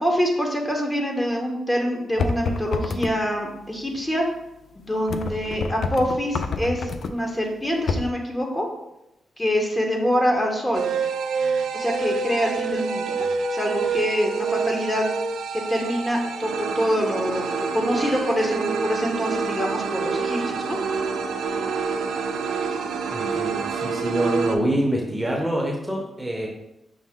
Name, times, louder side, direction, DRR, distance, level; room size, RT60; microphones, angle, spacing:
voice 1, 0.0-4.3 4.7-8.7 9.4-10.9 11.7-15.1 15.5-20.8, equal, 20° left, 1 dB, 1.0 m, -25 dB
sound 1, 2.2-3.1 5.1-7.1 7.9-8.1, left 4 dB, 70° left, 0.3 m, -27 dB
sound 2, 10.7-24.5, right 5 dB, 80° right, 0.3 m, -27 dB
voice 2, 23.1-26.5, right 1 dB, 10° right, 0 dB, 0.8 m, -25 dB
5.9 x 2.1 x 3.6 m, 0.87 s
supercardioid pair, 60°, 0 cm